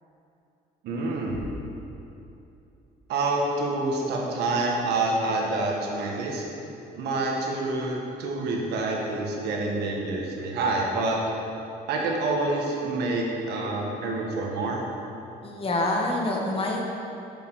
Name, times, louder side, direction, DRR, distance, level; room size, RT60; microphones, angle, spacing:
voice 1, 0.8-1.4 3.1-6.5 7.0-11.2 11.9-14.8, right 2 dB, 75° right, -1 dB, 1.6 m, -27 dB
sound 1, 1.3-2.7, left 1 dB, 90° left, 1.9 m, -43 dB
voice 2, 15.4-16.8, left 2 dB, 35° left, 0 dB, 1.5 m, -26 dB
7.2 x 7.0 x 6.2 m, 2.8 s
cardioid pair, 110°, 17 cm